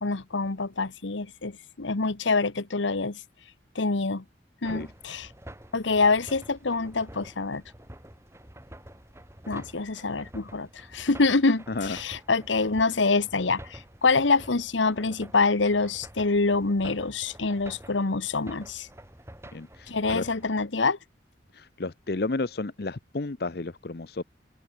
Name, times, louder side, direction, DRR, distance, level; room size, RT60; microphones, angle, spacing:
voice 1, 0.0-3.2 3.7-4.2 4.6-5.3 5.7-7.6 9.5-18.9 19.9-21.0, left 3 dB, 80° left, 1.2 m, -26 dB
sound 1, 4.6-20.7, right 1 dB, 15° right, 2.9 m, -48 dB
voice 2, 19.5-20.2 21.5-24.2, left 3 dB, 55° left, 0.8 m, -32 dB
open air
head